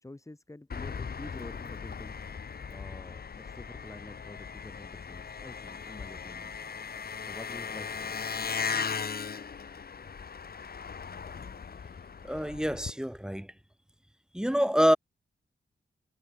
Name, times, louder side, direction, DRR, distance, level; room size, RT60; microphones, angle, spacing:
voice 1, 0.0-2.2 2.7-6.5 7.2-8.2, left 2 dB, 15° left, 3.9 m, -48 dB
Engine, 0.7-12.9, left 6 dB, 50° left, 1.9 m, -38 dB
voice 2, 12.2-13.5 14.3-15.0, equal, 5° right, 0.8 m, -26 dB
wide cardioid pair, 135°, 20 cm